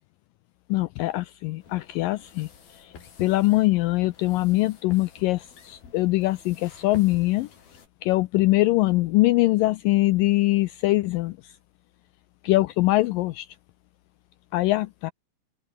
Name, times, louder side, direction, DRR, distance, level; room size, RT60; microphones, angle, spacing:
voice 1, 0.7-2.5 2.8-2.9 3.2-7.5 8.0-11.4 12.4-13.5 14.5-15.1, left 19 dB, 90° left, 2.0 m, -22 dB
sound 1, 1.6-7.9, left 6 dB, 65° left, 5.8 m, -48 dB
open air
omnidirectional pair, 4.6 m